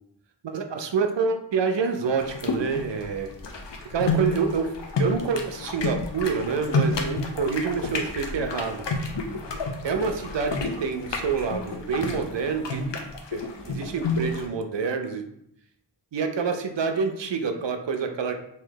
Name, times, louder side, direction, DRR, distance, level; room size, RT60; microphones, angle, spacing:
voice 1, 0.4-3.3 3.9-4.7 5.0-8.8 9.8-12.8 13.3-15.2 16.1-18.4, right 5 dB, 75° right, 6 dB, 0.6 m, -27 dB
sound 1, 2.2-14.5, left 3 dB, 75° left, 0.6 m, -30 dB
3.2 x 2.7 x 3.8 m, 0.74 s
wide cardioid pair, 75°, 44 cm